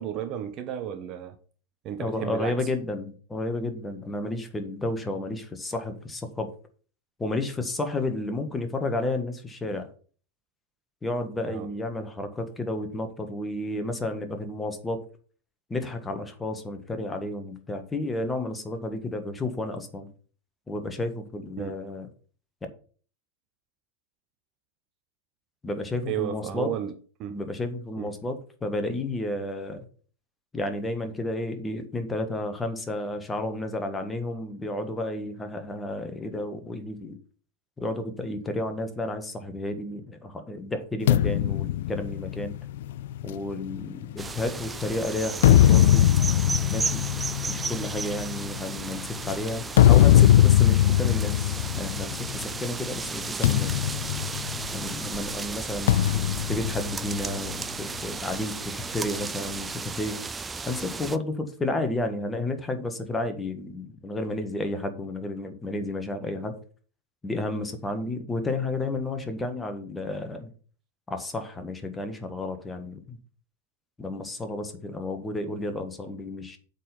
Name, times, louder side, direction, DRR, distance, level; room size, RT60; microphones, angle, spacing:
voice 1, 0.0-1.3 1.8-2.6 11.5-11.7 21.6-21.8 26.1-26.9 27.2-27.3 28.0-28.1, right 10 dB, 35° right, 0.8 m, -33 dB
voice 2, 2.0-6.5 7.2-9.9 11.0-15.0 15.7-20.1 20.7-22.1 25.6-26.7 27.3-29.8 30.5-37.2 37.8-42.5 43.2-46.1 46.7-47.0 47.5-53.7 54.7-56.0 56.5-60.2 60.7-66.5 67.2-70.5 71.1-73.2 74.0-76.6, left 2 dB, 10° left, 1.4 m, -32 dB
sound 1, 41.1-44.7 45.2-52.6 52.9-53.1 53.4-55.0 55.9-57.6, left 12 dB, 55° left, 0.3 m, -21 dB
sound 2, 44.2-61.2, right 4 dB, 15° right, 0.5 m, -34 dB
8.3 x 4.1 x 7.0 m
figure-of-eight pair, 90°, 0 cm